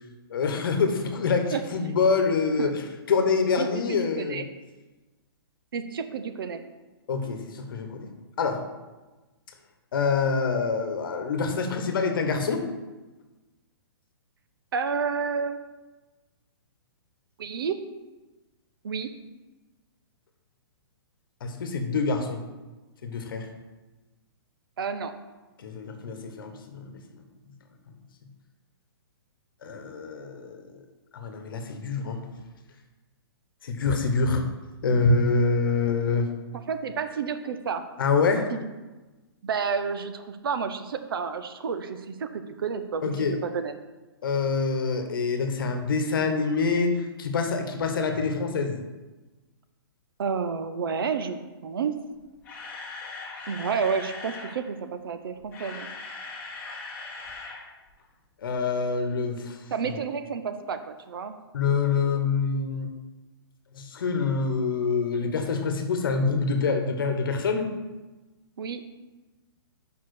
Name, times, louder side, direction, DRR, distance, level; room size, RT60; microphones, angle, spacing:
voice 1, 0.3-2.8 3.1-4.4 7.1-8.1 8.4-8.6 9.9-12.6 21.4-22.4 23.0-23.5 25.6-26.9 29.6-30.8 31.1-32.2 33.6-34.4 34.8-36.3 38.0-38.5 43.0-43.4 44.2-48.8 58.4-59.6 59.9-60.0 61.5-62.9 63.7-67.7, left 4 dB, 60° left, 5 dB, 1.1 m, -26 dB
voice 2, 3.6-4.4 5.7-6.6 14.7-15.6 17.4-17.8 18.8-19.1 24.8-25.1 36.7-37.8 38.5-38.6 39.4-43.7 50.2-51.9 53.5-55.9 59.7-61.3 68.6-68.8, right 6 dB, 65° right, 9 dB, 0.7 m, -30 dB
Camera, 52.2-54.6 55.3-57.6 57.9-58.0 58.5-58.6, left 3 dB, 10° left, 1.2 m, -39 dB
5.6 x 4.8 x 6.4 m, 1.2 s
hypercardioid pair, 170°, 13 cm